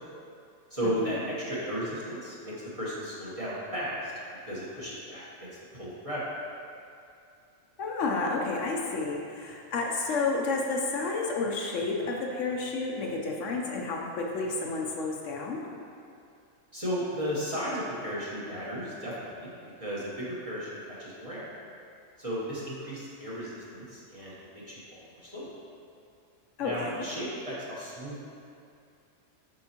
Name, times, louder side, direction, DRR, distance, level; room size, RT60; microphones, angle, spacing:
voice 1, 0.7-4.1 4.4-6.3 16.7-21.4 22.2-25.5 26.6-28.2, equal, 30° right, -8 dB, 1.0 m, -35 dB
voice 2, 7.8-15.6 26.6-26.9, left 3 dB, 70° left, -1 dB, 1.0 m, -31 dB
7.9 x 5.4 x 2.9 m, 2.5 s
omnidirectional pair, 1.4 m